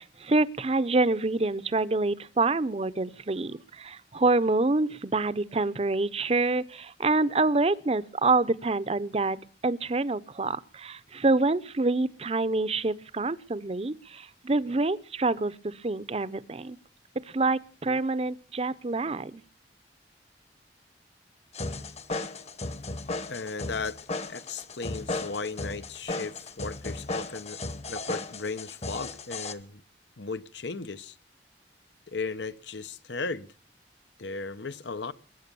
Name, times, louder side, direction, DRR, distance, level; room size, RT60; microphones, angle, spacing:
voice 1, 0.0-16.8 17.3-19.4, right 3 dB, 35° right, 0.7 m, -27 dB
sound 1, 21.5-29.5, left 2 dB, 35° left, 1.1 m, -35 dB
voice 2, 23.3-27.6 27.9-29.8 30.2-31.1 32.1-33.5 34.2-35.1, left 4 dB, 85° left, 1.0 m, -36 dB
22.0 x 9.3 x 6.9 m
head